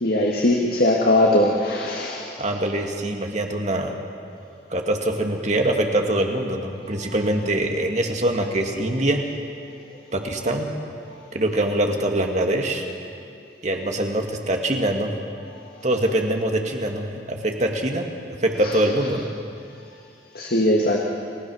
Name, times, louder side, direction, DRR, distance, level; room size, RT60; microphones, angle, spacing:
voice 1, 0.0-2.2 20.4-21.0, left 1 dB, 60° left, -1 dB, 1.8 m, -20 dB
voice 2, 2.4-3.9 4.7-9.2 10.1-10.7 11.3-12.8 13.6-15.1 15.8-18.0 18.4-19.3, right 1 dB, 40° right, 2 dB, 2.1 m, -23 dB
30.0 x 15.5 x 6.4 m, 2.5 s
head